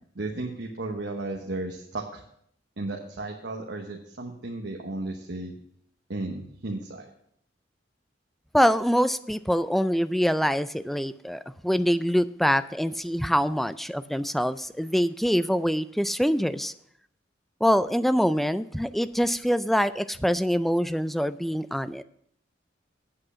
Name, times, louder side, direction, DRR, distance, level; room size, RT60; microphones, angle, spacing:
voice 1, 0.1-2.2 2.8-5.5 6.1-7.1, right 2 dB, 70° right, 1 dB, 1.1 m, -34 dB
voice 2, 8.5-16.7 17.6-22.0, equal, ahead, 14 dB, 0.3 m, -24 dB
8.6 x 7.8 x 5.7 m, 0.68 s
head